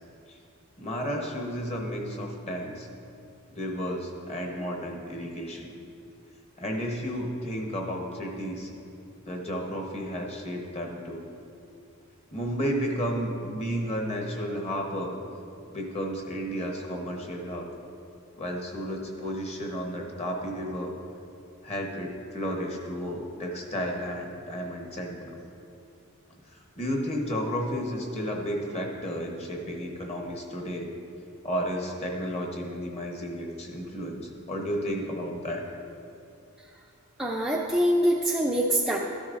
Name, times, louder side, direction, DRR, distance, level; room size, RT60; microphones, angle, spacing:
voice 1, 0.8-2.9 3.5-5.7 6.6-8.7 9.3-11.3 12.3-15.2 15.7-17.7 18.4-20.9 21.6-25.4 26.5-30.9 31.4-35.6, equal, 30° left, 1 dB, 1.0 m, -32 dB
voice 2, 37.2-39.0, equal, ahead, -3 dB, 0.4 m, -24 dB
13.0 x 10.0 x 2.5 m, 2.6 s
head